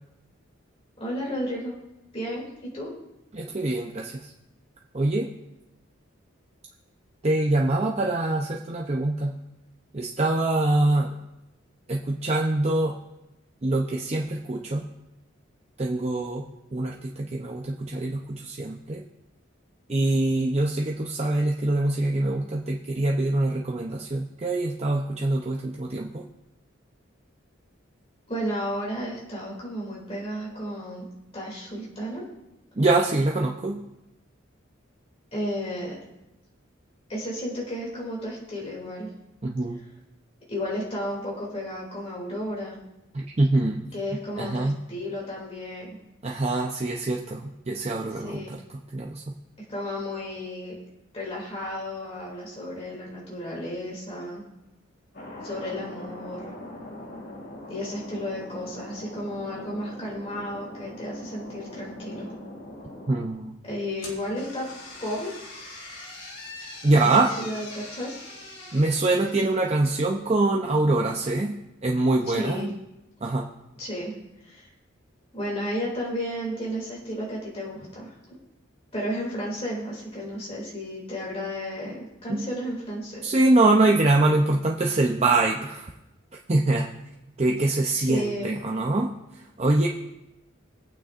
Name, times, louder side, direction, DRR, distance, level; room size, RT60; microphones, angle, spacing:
voice 1, 1.0-1.7 2.1-2.9 28.3-31.1 31.3-32.2 35.3-35.9 37.1-39.1 40.5-42.8 43.9-46.0 48.2-48.5 49.7-50.7 51.1-54.4 55.4-56.5 57.7-62.3 63.6-64.7 65.0-65.3 66.9-67.1 67.4-68.2 72.3-72.7 73.8-74.1 74.4-74.7 75.3-78.3 78.9-83.3 88.0-88.5, equal, 30° left, -5 dB, 2.7 m, -33 dB
voice 2, 3.3-4.3 4.9-5.3 7.2-9.4 9.9-11.2 11.9-13.0 13.6-14.9 15.8-19.0 19.9-26.3 32.8-33.8 39.4-39.8 43.1-43.8 44.4-44.8 46.2-48.6 48.9-49.3 63.1-63.6 66.8-67.3 68.7-72.7 73.2-73.5 82.3-82.5 83.2-85.9 86.5-86.9 87.4-89.2 89.6-89.9, right 2 dB, 30° right, -1 dB, 0.6 m, -24 dB
Thunder, 55.1-63.3, left 1 dB, 50° left, 2.5 m, -41 dB
sound 1, 64.0-70.1, left 2 dB, 85° left, 3.5 m, -43 dB
21.0 x 8.9 x 2.5 m, 0.96 s
head